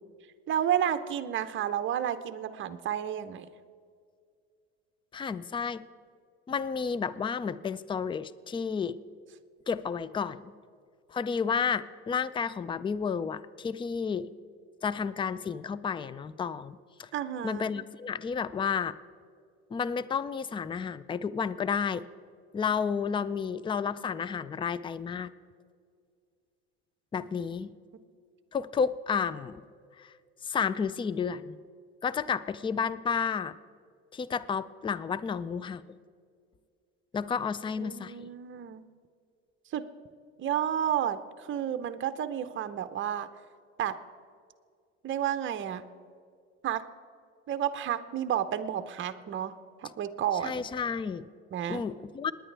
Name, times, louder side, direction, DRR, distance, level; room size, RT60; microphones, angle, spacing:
voice 1, 0.5-3.5 17.1-17.7 37.8-38.8 39.7-39.9 40.4-41.2 41.5-43.3 43.8-43.9 45.0-45.8 46.6-46.8 47.5-49.5 49.8-50.7 51.5-51.8, right 10 dB, 35° right, 10 dB, 0.8 m, -31 dB
voice 2, 5.1-5.8 6.5-9.0 9.7-10.4 11.1-14.3 14.8-17.1 17.4-19.0 19.7-22.0 22.5-25.3 27.1-27.7 28.5-29.6 30.0-30.1 30.4-31.6 32.0-33.5 34.1-35.8 37.1-38.1 50.4-51.3 51.7-52.3, left 6 dB, 15° left, 17 dB, 0.4 m, -31 dB
27.5 x 10.0 x 3.4 m, 2.2 s
hypercardioid pair, 85°, 34 cm